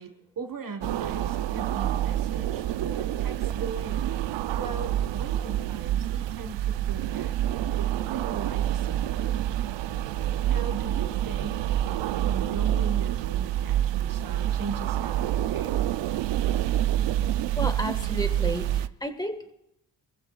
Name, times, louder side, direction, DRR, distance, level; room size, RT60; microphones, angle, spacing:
voice 1, 0.0-4.1 4.5-7.4 7.6-9.5 10.4-11.6 12.3-15.8, right 4 dB, 50° right, 7 dB, 1.5 m, -39 dB
sound 1, 0.8-18.9, right 12 dB, 80° right, 0.6 m, -27 dB
voice 2, 17.5-19.5, equal, 10° left, 7 dB, 1.5 m, -32 dB
23.5 x 15.0 x 2.4 m, 0.78 s
cardioid pair, 80°, 43 cm